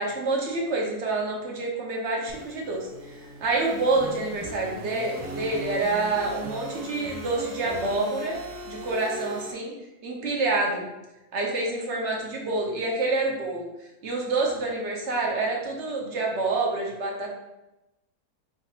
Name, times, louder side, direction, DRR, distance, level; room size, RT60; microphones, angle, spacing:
voice 1, 0.0-2.9 3.4-8.4 8.7-9.7 10.0-10.9 11.3-13.7 14.0-17.3, right 2 dB, 55° right, -1 dB, 1.0 m, -27 dB
sound 1, 2.3-9.5, right 1 dB, 85° right, 1.2 m, -38 dB
5.9 x 2.5 x 2.8 m, 0.95 s
omnidirectional pair, 1.6 m